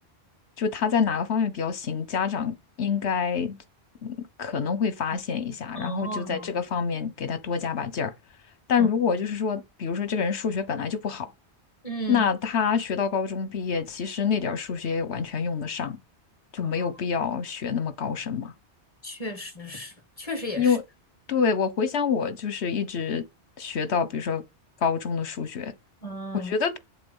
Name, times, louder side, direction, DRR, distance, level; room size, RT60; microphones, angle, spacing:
voice 1, 0.6-3.6 4.0-8.1 8.7-11.3 12.1-16.0 16.5-18.5 20.6-20.8 21.3-23.2 23.6-24.4 24.8-25.7 26.4-26.8, left 6 dB, 75° left, 1.3 m, -27 dB
voice 2, 5.8-6.5 8.8-8.9 11.8-12.3 16.6-16.9 19.0-20.8 26.0-26.5, right 1 dB, 30° left, 1.8 m, -35 dB
8.5 x 7.5 x 5.5 m
omnidirectional pair, 1.1 m